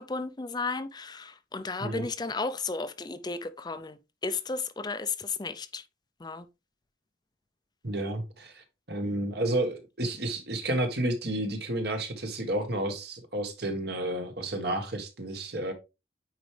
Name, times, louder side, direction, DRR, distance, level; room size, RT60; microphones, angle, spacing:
voice 1, 0.0-5.8 6.2-6.5, left 4 dB, 20° left, 0.5 m, -34 dB
voice 2, 7.8-15.7, right 1 dB, 60° right, 1.5 m, -31 dB
9.1 x 4.6 x 3.3 m
head